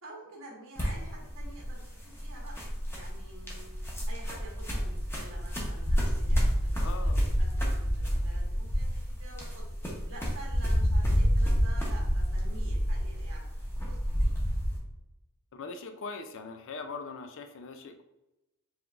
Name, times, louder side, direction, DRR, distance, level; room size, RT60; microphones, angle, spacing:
voice 1, 0.0-2.6 2.9-3.7 4.1-9.7 10.1-13.5 13.9-14.6, right 2 dB, 65° right, -2 dB, 1.3 m, -49 dB
sound 1, 0.7-14.8, equal, 10° left, 0.9 m, -29 dB
voice 2, 6.8-7.2 15.5-18.0, left 4 dB, 60° left, 6 dB, 0.4 m, -41 dB
4.8 x 3.6 x 2.5 m, 0.95 s
head